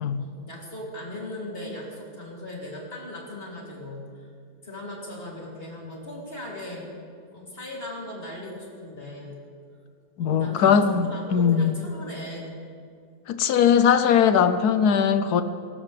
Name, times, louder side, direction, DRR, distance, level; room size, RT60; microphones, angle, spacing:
voice 1, 0.2-4.3 4.6-6.9 7.3-9.4 10.2-12.6, left 1 dB, 30° left, -4 dB, 3.2 m, -38 dB
voice 2, 10.2-11.8 13.3-15.4, left 7 dB, 70° left, 10 dB, 1.1 m, -20 dB
23.0 x 12.5 x 3.4 m, 2.3 s
omnidirectional pair, 1.9 m